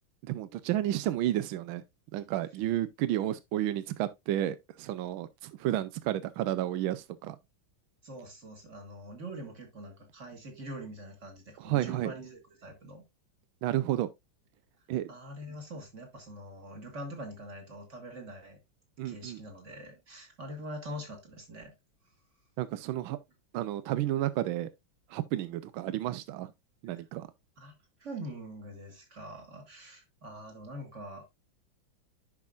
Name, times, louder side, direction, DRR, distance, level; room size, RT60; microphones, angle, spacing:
voice 1, 0.2-1.8 2.1-7.4 11.6-12.1 13.6-14.1 14.9-15.1 19.0-19.4 22.6-23.2 23.5-24.7 25.1-26.5 26.8-27.3, right 13 dB, 85° right, 1.4 m, -31 dB
voice 2, 8.0-13.1 15.1-18.6 19.0-21.7 27.6-27.7 28.0-31.3, right 1 dB, 35° right, 2.5 m, -44 dB
10.5 x 6.1 x 2.5 m
omnidirectional pair, 2.2 m